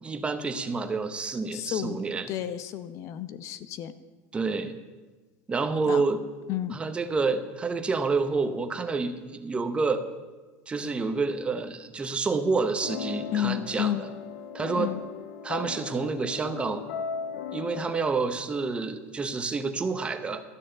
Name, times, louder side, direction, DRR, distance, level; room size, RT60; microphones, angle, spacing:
voice 1, 0.0-2.3 4.3-4.7 5.5-6.2 6.7-10.1 10.7-13.9 14.5-14.9 15.4-16.8 17.5-20.4, right 4 dB, 15° right, 9 dB, 0.8 m, -28 dB
voice 2, 1.5-2.0 2.3-4.0 5.9-6.0 6.5-6.7 13.3-14.0 14.7-15.0, left 11 dB, 45° left, 14 dB, 0.7 m, -31 dB
sound 1, 12.8-18.3, left 7 dB, 90° left, 1.0 m, -37 dB
12.5 x 6.3 x 8.9 m, 1.3 s
cardioid pair, 150°, 7 cm